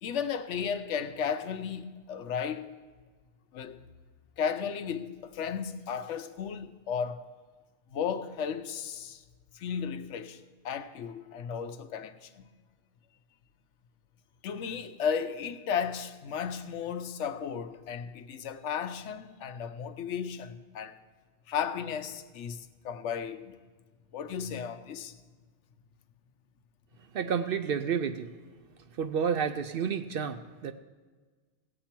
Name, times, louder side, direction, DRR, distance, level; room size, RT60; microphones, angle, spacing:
voice 1, 0.0-2.8 3.5-3.8 4.4-7.3 7.9-9.2 9.5-12.4 14.4-21.0 21.5-23.6 24.1-25.1, left 7 dB, 80° left, 1.0 m, -34 dB
voice 2, 27.1-28.3 29.0-30.7, right 7 dB, 60° right, 0.6 m, -30 dB
17.0 x 7.6 x 4.4 m
omnidirectional pair, 1.2 m